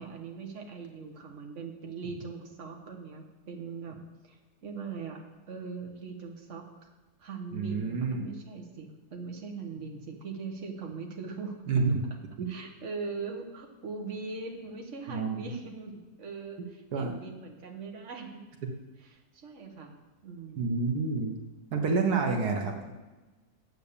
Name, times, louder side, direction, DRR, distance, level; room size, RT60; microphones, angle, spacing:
voice 1, 0.0-4.0 4.2-5.2 5.5-6.9 7.2-11.6 12.5-18.4 19.0-20.0 20.2-20.8, right 4 dB, 50° right, 2 dB, 1.7 m, -41 dB
voice 2, 7.5-8.2 11.7-12.0 12.4-12.5 15.1-15.4 16.9-17.1 20.6-21.3 21.7-22.9, right 4 dB, 80° right, 3 dB, 1.7 m, -28 dB
10.0 x 8.3 x 6.8 m, 1.2 s
omnidirectional pair, 1.7 m